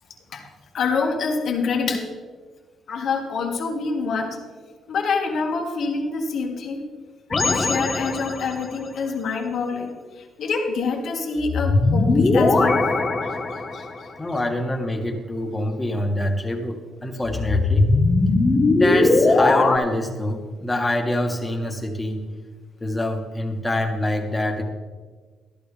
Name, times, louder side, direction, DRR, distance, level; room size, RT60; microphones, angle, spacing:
voice 1, 0.7-2.1 2.9-4.4 4.9-6.8 7.4-9.9 10.4-12.8 13.7-13.8, left 4 dB, 65° left, 1 dB, 2.1 m, -26 dB
sound 1, 7.3-8.7 11.4-14.0 17.2-19.8, left 3 dB, 35° left, 1.3 m, -19 dB
voice 2, 14.2-17.9 18.8-22.3 22.8-24.6, left 1 dB, 15° left, 2 dB, 1.9 m, -25 dB
14.0 x 12.0 x 3.4 m, 1.4 s
cardioid pair, 90°, 0 cm